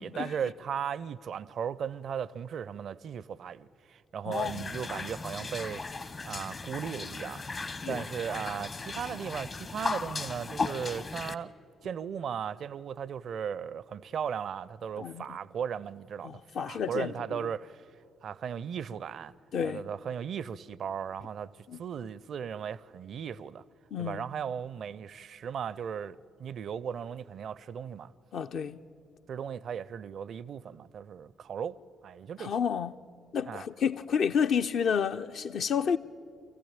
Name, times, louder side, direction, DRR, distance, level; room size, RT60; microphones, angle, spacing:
voice 1, 0.0-5.8 6.3-7.4 7.9-11.5 11.8-17.9 18.2-19.3 19.6-23.6 24.0-28.1 29.3-32.6 33.4-33.6, right 8 dB, 55° right, 0.5 m, -37 dB
voice 2, 4.3-4.6 7.8-8.0 15.0-15.2 16.2-17.4 19.5-19.9 21.7-21.8 23.9-24.2 28.3-28.8 32.4-32.9 33.3-36.0, left 7 dB, 55° left, 0.6 m, -30 dB
sound 1, 4.3-11.3, left 3 dB, 40° left, 1.0 m, -37 dB
25.0 x 15.0 x 8.9 m
figure-of-eight pair, 40°, 0 cm